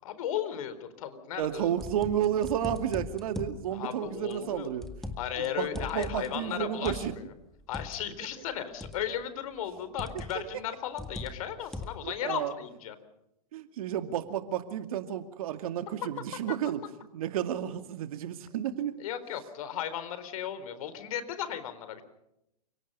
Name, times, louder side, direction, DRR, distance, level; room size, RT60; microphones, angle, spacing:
voice 1, 0.0-1.7 3.7-4.7 5.2-7.2 7.7-13.0 16.0-16.1 16.5-16.6 19.0-22.0, left 10 dB, 60° left, 12 dB, 3.9 m, -35 dB
sound 1, 1.4-3.6 4.3-5.5 5.7-8.0 8.8-9.2 10.0-10.5 11.0-12.1, left 2 dB, ahead, 1.9 m, -40 dB
voice 2, 1.4-4.9 5.4-5.7 5.9-7.1 12.0-12.5 13.5-16.8 17.1-19.0, right 10 dB, 60° right, 8 dB, 2.4 m, -31 dB
29.0 x 18.0 x 5.6 m, 0.82 s
hypercardioid pair, 115°, 21 cm